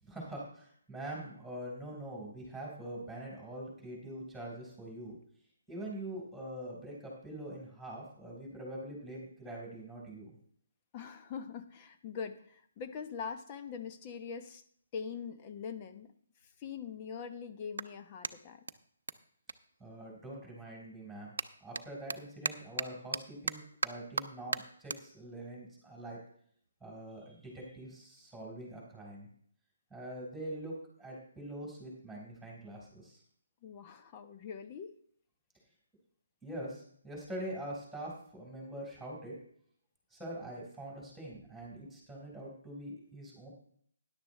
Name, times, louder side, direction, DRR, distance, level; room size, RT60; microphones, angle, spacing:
voice 1, 0.0-5.2 5.7-10.3 19.8-26.2 26.8-29.3 29.9-33.2 36.4-39.3 40.1-43.5, right 1 dB, ahead, -4 dB, 4.4 m, -44 dB
voice 2, 10.9-14.6 14.9-16.1 16.4-18.6 33.6-34.9, left 6 dB, 25° left, 8 dB, 1.0 m, -43 dB
Clapping, 16.4-20.5 20.8-27.4, right 4 dB, 75° right, 0.6 m, -41 dB
13.0 x 10.5 x 3.3 m, 0.63 s
hypercardioid pair, 155°, 0 cm